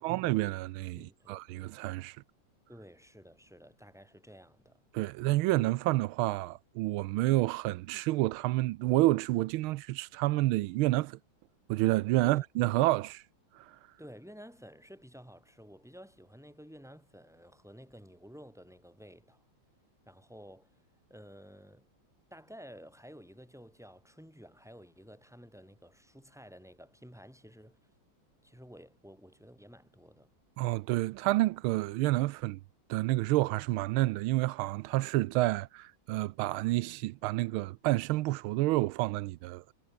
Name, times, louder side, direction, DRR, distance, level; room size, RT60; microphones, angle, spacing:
voice 1, 0.0-2.2 4.9-11.2 11.7-13.2 13.5-13.8 30.6-32.6 32.9-39.7, right 18 dB, 90° right, 1.4 m, -29 dB
voice 2, 0.9-1.7 2.7-4.8 12.2-12.5 14.0-19.4 20.0-20.8 21.1-21.9 22.3-27.9 28.4-30.3, equal, ahead, 6.6 m, -52 dB
omnidirectional pair, 2.2 m